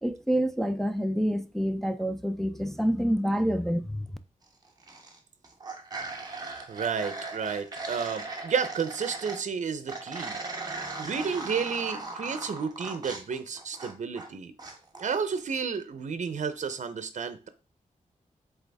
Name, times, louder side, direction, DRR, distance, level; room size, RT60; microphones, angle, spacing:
voice 1, 0.0-4.1, equal, ahead, 0.3 m, -27 dB
sound 1, 4.6-5.2 5.4-9.4 9.9-14.3 14.6-15.1, right 3 dB, 30° right, 1.2 m, -38 dB
voice 2, 6.7-10.4 11.0-14.5 15.0-17.5, right 6 dB, 60° right, 0.8 m, -31 dB
8.1 x 3.5 x 3.5 m
wide cardioid pair, 165°, 14 cm